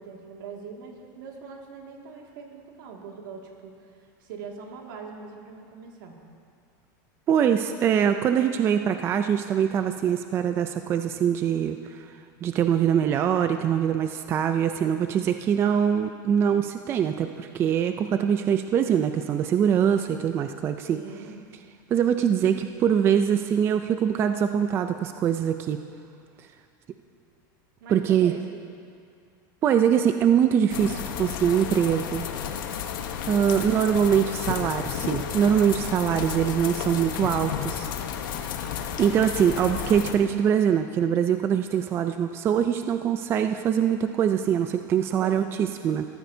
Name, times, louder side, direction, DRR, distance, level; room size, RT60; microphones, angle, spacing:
voice 1, 0.0-6.2 20.9-21.4 27.8-28.6 33.6-33.8 45.2-45.5, right 5 dB, 75° right, 0 dB, 2.2 m, -42 dB
voice 2, 7.3-12.0 12.4-21.0 21.9-25.8 27.9-28.3 29.6-32.3 32.7-32.9 33.3-37.9 39.0-46.1, right 8 dB, 20° right, 8 dB, 0.4 m, -23 dB
sound 1, 30.7-40.1, left 8 dB, 90° left, 1.0 m, -32 dB
18.5 x 14.0 x 2.7 m, 2.3 s
supercardioid pair, 160°, 11 cm